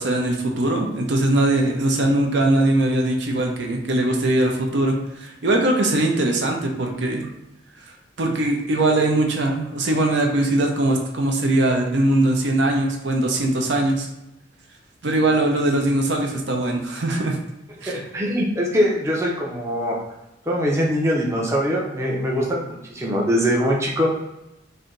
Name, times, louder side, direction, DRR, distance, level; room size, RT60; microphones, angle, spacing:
voice 1, 0.0-7.2 8.2-14.1 15.0-17.4 17.8-18.0, right 1 dB, 70° right, 1 dB, 0.7 m, -21 dB
voice 2, 17.9-20.0 20.5-24.1, equal, 15° right, -3 dB, 0.5 m, -22 dB
3.3 x 2.6 x 3.8 m, 0.90 s
head